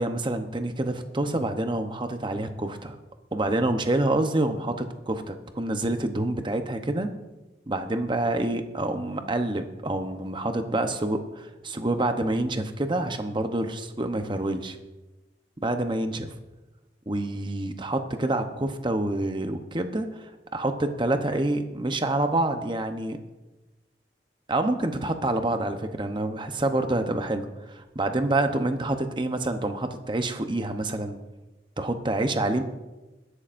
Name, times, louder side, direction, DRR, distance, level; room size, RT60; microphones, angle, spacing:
voice 1, 0.0-3.0 3.3-7.1 7.7-14.8 15.6-16.3 17.1-23.2 24.5-31.2 31.8-32.6, right 2 dB, 25° right, 7 dB, 0.8 m, -27 dB
21.5 x 11.5 x 2.6 m, 1.1 s
head